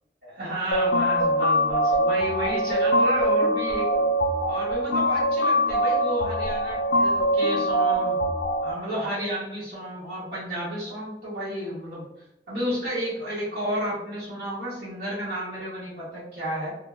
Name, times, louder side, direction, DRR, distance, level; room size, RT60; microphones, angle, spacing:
voice 1, 0.2-3.9 4.5-8.2 8.6-12.1 12.5-16.7, equal, 65° right, -10 dB, 0.9 m, -31 dB
sound 1, 0.7-8.7, equal, 90° left, 0.4 m, -23 dB
2.3 x 2.1 x 3.0 m, 0.85 s
head